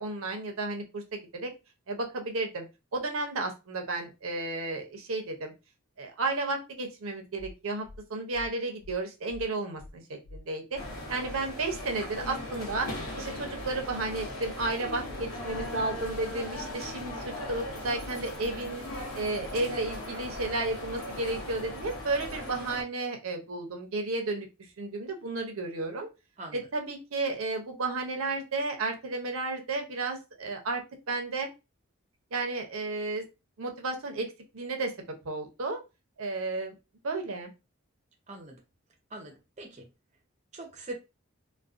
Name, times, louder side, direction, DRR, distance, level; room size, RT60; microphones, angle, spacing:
voice 1, 0.0-1.5 1.9-2.7 2.9-5.5 6.0-10.8 11.1-12.9 13.2-18.8 19.1-24.5 24.8-26.1 26.5-31.5 32.3-33.3 33.6-35.8 36.2-36.8 37.0-37.5, right 2 dB, 80° right, 0.6 m, -33 dB
sound 1, 7.4-7.5 7.8-8.0 8.3-8.5 8.8-9.0 9.3-9.4 9.8-9.9 10.2-10.4 10.7-10.9 11.2-11.4 11.7-11.8 12.2-12.3 12.6-12.8 13.1-13.3 13.6-13.8 14.1-14.2 14.6-14.7 15.0-15.2 15.5-15.7 16.0-16.2 16.5-16.6 17.0-17.1 17.4-17.6 17.9-18.1 18.4-18.6 18.9-19.0 19.4-19.5 19.8-20.0 20.3-20.5 20.8-21.0 21.3-21.4 21.8-21.9 22.2-22.4, left 1 dB, 65° left, 0.4 m, -46 dB
sound 2, 10.8-22.8, left 1 dB, 85° left, 0.8 m, -39 dB
voice 2, 10.8-11.1 26.4-26.7 38.3-38.6 39.1-39.9 40.5-41.0, right 1 dB, 35° right, 0.6 m, -43 dB
2.4 x 2.2 x 2.4 m
head